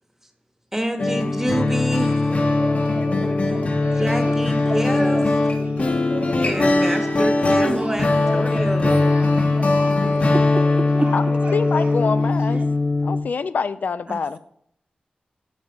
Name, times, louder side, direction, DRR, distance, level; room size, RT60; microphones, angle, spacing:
voice 1, 0.7-2.4 3.4-3.6 4.0-5.6 6.4-9.2, right 1 dB, 10° right, 6 dB, 1.3 m, -28 dB
sound 1, 1.0-13.2, left 2 dB, 50° left, 1.3 m, -20 dB
sound 2, 1.9-7.3 7.8-12.6, right 2 dB, 50° right, 1.1 m, -36 dB
voice 2, 10.1-11.1 14.1-14.4, right 2 dB, 35° right, 9 dB, 0.5 m, -29 dB
voice 3, 11.5-12.6 13.0-14.4, left 5 dB, 65° left, 13 dB, 0.3 m, -25 dB
9.0 x 3.4 x 6.5 m, 0.69 s
cardioid pair, 55°, 3 cm